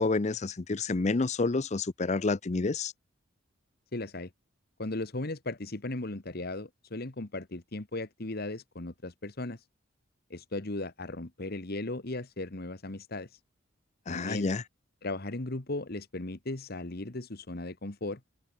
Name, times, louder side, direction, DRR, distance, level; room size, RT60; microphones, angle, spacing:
voice 1, 0.0-2.9 14.1-14.6, left 3 dB, 35° left, 0.6 m, -29 dB
voice 2, 3.9-4.3 4.8-9.6 10.3-13.4 14.1-14.5 15.0-18.2, left 2 dB, 50° left, 1.5 m, -37 dB
open air
head